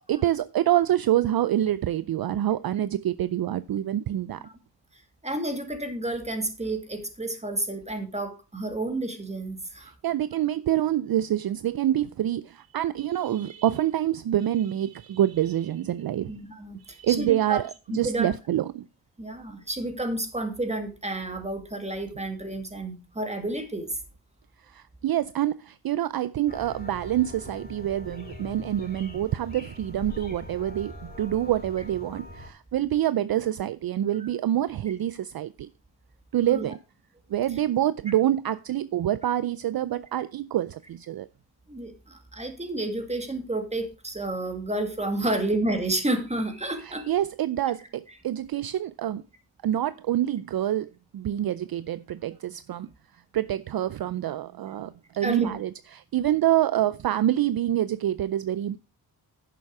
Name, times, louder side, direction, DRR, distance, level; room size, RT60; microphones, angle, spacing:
voice 1, 0.1-4.5 9.8-16.3 16.8-18.8 24.7-35.7 36.3-36.8 37.3-41.3 45.2-45.3 46.8-49.2 49.6-52.9 53.3-58.8, right 12 dB, 60° right, 0.5 m, -26 dB
voice 2, 4.9-9.9 16.3-17.6 17.9-18.3 19.2-23.9 36.5-36.8 41.7-47.1 55.2-55.5, right 2 dB, 15° right, 2.2 m, -30 dB
sound 1, 26.5-32.5, left 1 dB, 20° left, 4.5 m, -42 dB
10.5 x 7.0 x 4.7 m
wide cardioid pair, 100°, 42 cm